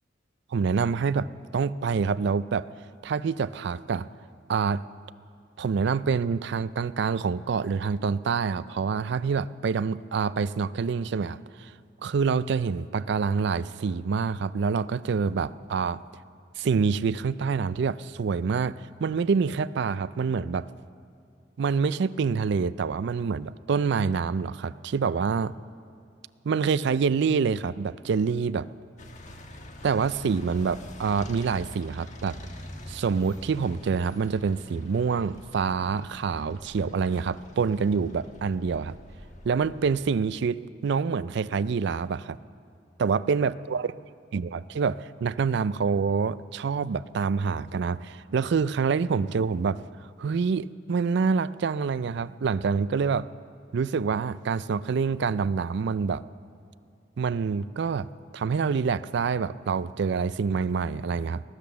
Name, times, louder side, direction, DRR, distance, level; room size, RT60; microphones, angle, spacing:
voice 1, 0.5-1.3 1.5-2.7 3.0-4.1 4.5-4.8 5.6-11.7 12.0-16.0 16.6-18.7 19.0-20.7 21.6-25.6 26.4-28.7 29.8-32.4 32.9-39.0 39.4-42.4 43.0-43.9 44.3-49.8 50.2-53.3 53.7-56.2 57.2-58.1 58.3-61.4, right 5 dB, 65° right, 16 dB, 0.4 m, -26 dB
sound 1, 29.0-40.3, left 1 dB, 40° left, 1.3 m, -45 dB
20.0 x 10.5 x 6.9 m, 2.4 s
head